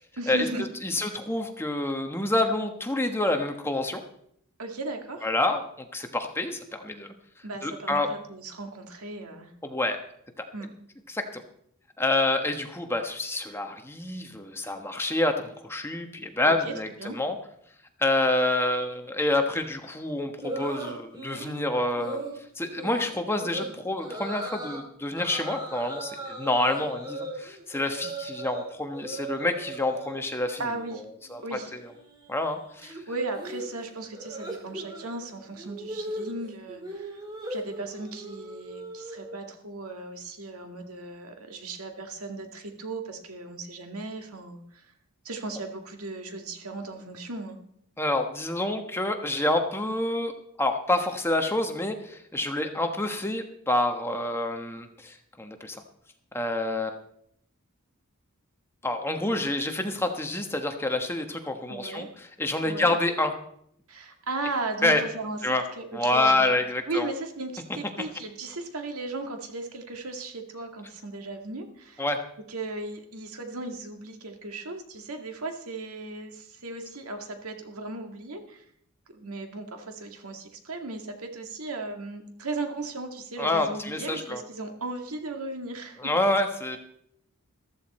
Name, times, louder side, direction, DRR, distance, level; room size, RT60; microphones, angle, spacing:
voice 1, 0.2-0.7 0.9-1.2 4.6-5.3 7.4-9.5 10.5-10.7 16.4-16.7 17.0-17.2 30.6-31.0 31.4-31.7 32.8-37.2 37.5-44.8 45.2-47.6 61.7-62.1 62.6-62.9 63.9-66.5 66.9-72.1 72.5-78.6 79.1-86.1, right 2 dB, 85° right, 4 dB, 2.1 m, -36 dB
voice 2, 0.8-4.0 5.2-7.1 7.6-8.1 9.6-10.0 11.1-11.4 12.0-17.3 18.0-22.2 22.6-30.6 31.3-31.6 32.3-33.0 48.0-50.3 50.6-55.8 56.3-57.0 58.8-63.3 64.8-65.0 65.4-65.6 65.9-67.1 68.0-68.1 72.0-72.2 83.4-84.4 86.0-86.8, left 2 dB, 10° left, 5 dB, 1.2 m, -27 dB
sound 1, 20.4-21.6 22.0-22.3 22.8-23.1 23.4-23.7 24.0-24.8 25.2-28.6 28.9-30.2 30.5-31.0 31.2-39.4, right 1 dB, 20° right, 3.4 m, -38 dB
14.0 x 14.0 x 4.3 m, 0.71 s
head